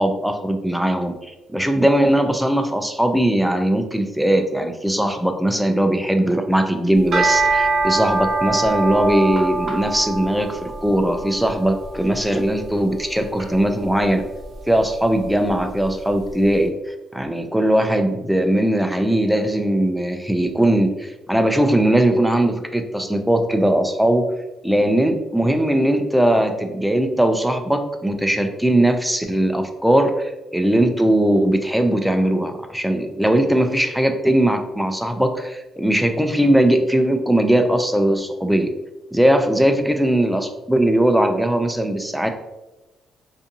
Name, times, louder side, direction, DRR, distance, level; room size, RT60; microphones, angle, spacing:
voice 1, 0.0-14.2 14.7-16.7 17.1-24.2 24.6-38.7 39.1-42.3, right 1 dB, ahead, 5 dB, 0.3 m, -19 dB
sound 1, 7.0-16.3, right 3 dB, 55° right, 0.6 m, -25 dB
2.6 x 2.5 x 2.6 m, 1.0 s
cardioid pair, 90°, 0 cm